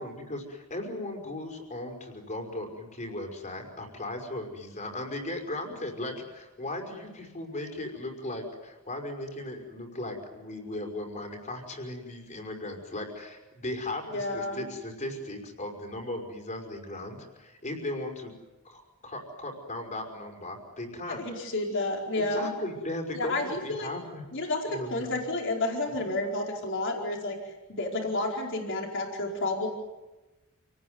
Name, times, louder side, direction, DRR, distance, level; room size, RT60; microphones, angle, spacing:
voice 1, 0.0-18.3 18.6-21.2 22.2-25.2 26.0-26.1, left 1 dB, 35° left, 3 dB, 5.6 m, -37 dB
voice 2, 14.1-14.6 21.1-22.5 23.1-23.5 23.8-23.9 24.3-27.3 27.7-29.7, left 2 dB, 60° left, 1 dB, 4.8 m, -30 dB
29.0 x 19.0 x 9.7 m, 1.1 s
head